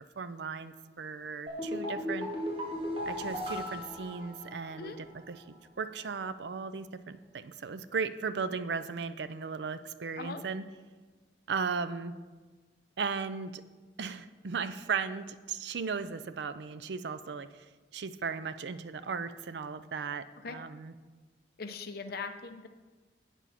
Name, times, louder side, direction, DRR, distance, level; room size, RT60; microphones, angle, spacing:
voice 1, 0.2-2.3 3.1-5.4 5.8-10.6 11.5-12.1 13.0-13.6 14.0-17.5 17.9-20.9, right 5 dB, 70° right, 12 dB, 0.5 m, -36 dB
sound 1, 1.5-4.9 5.2-5.3, left 1 dB, 30° right, 2.3 m, -36 dB
voice 2, 21.6-22.7, left 4 dB, 60° left, 6 dB, 0.8 m, -40 dB
8.3 x 7.2 x 5.8 m, 1.4 s
head